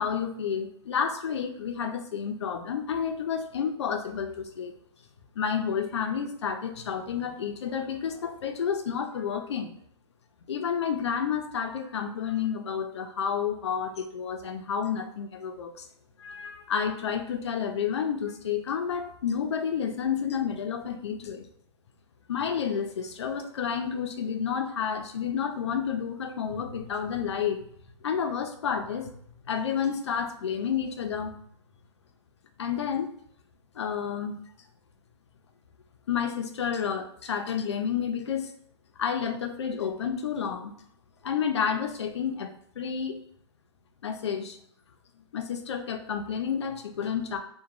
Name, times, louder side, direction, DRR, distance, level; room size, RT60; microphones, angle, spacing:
voice 1, 0.0-4.7 5.4-9.7 10.5-15.9 16.2-21.5 22.3-27.6 28.0-29.1 29.4-31.3 32.6-33.1 33.8-34.4 36.1-38.5 39.0-40.7 41.2-43.2 44.0-44.6 45.3-47.4, left 7 dB, 65° left, 5 dB, 0.5 m, -30 dB
2.9 x 2.2 x 2.5 m, 0.67 s
hypercardioid pair, 180°, 15 cm